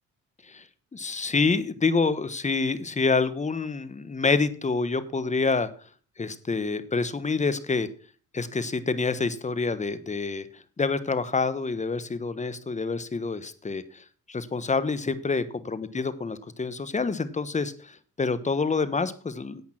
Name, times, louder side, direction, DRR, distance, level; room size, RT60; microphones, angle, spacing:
voice 1, 0.9-5.7 6.2-7.9 8.3-19.6, left 4 dB, 25° left, 14 dB, 1.2 m, -27 dB
10.5 x 8.5 x 5.8 m, 0.40 s
cardioid pair, 90°, 30 cm